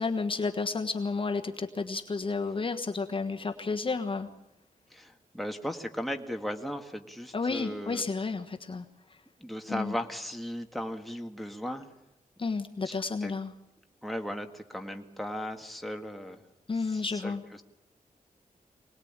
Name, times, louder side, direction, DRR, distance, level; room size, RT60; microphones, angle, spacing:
voice 1, 0.0-4.3 7.3-8.8 9.7-9.9 12.4-13.5 16.7-17.4, left 4 dB, 35° left, 6 dB, 1.4 m, -31 dB
voice 2, 4.9-8.0 8.3-8.5 9.4-11.9 12.8-13.3 14.0-16.4 16.7-17.6, equal, ahead, 4 dB, 1.9 m, -37 dB
25.0 x 19.5 x 8.9 m, 0.92 s
wide cardioid pair, 140°, 15 cm